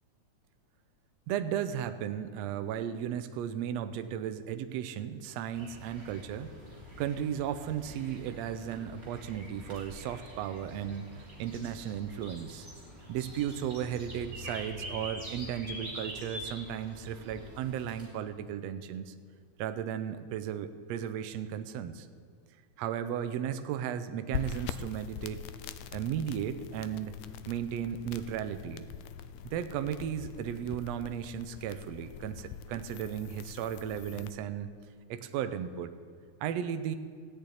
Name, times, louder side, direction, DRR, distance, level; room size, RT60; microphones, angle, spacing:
voice 1, 1.3-6.6 7.0-12.7 13.1-19.1 19.6-22.1 22.8-25.4 25.9-27.1 27.5-28.9 29.4-34.7 35.1-35.9 36.4-37.0, right 9 dB, 75° right, 9 dB, 1.7 m, -35 dB
sound 1, 5.5-18.1, equal, 20° right, 3.5 m, -45 dB
sound 2, 24.3-34.3, left 9 dB, 80° left, 1.6 m, -43 dB
15.5 x 6.7 x 9.8 m, 2.2 s
omnidirectional pair, 3.4 m